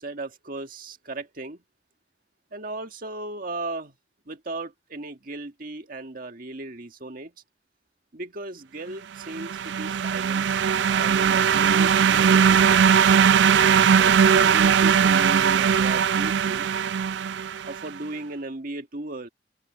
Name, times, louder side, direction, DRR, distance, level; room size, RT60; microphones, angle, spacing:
voice 1, 0.0-1.6 2.5-3.9 4.3-7.3 8.1-12.8 13.7-16.7 17.7-19.3, right 2 dB, 55° right, 1.8 m, -36 dB
sound 1, 9.2-17.8, right 7 dB, 85° right, 0.3 m, -19 dB
head